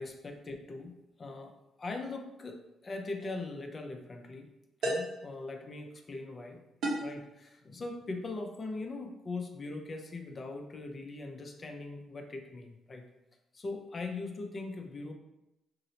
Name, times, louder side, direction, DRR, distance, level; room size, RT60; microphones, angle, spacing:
voice 1, 0.0-1.5 1.8-4.5 4.8-6.6 6.9-13.1 13.5-15.1, left 3 dB, 35° left, 3 dB, 0.4 m, -41 dB
sound 1, 3.2-3.4 4.8-5.3 6.8-7.2, right 1 dB, 75° right, 0.8 m, -33 dB
2.8 x 2.0 x 3.8 m, 0.92 s
cardioid pair, 110°, 0 cm